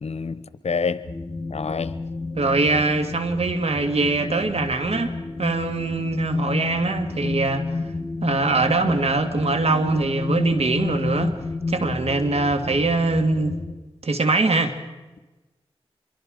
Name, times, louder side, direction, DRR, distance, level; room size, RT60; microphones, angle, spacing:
voice 1, 0.0-1.0 1.5-2.0, left 5 dB, 80° left, 0.9 m, -27 dB
sound 1, 1.0-13.7, left 3 dB, 50° left, 2.0 m, -30 dB
voice 2, 2.3-7.7 8.2-11.4 11.7-13.6 14.0-14.7, right 3 dB, 75° right, 2.0 m, -22 dB
26.5 x 22.5 x 5.1 m
cardioid pair, 50°, 11 cm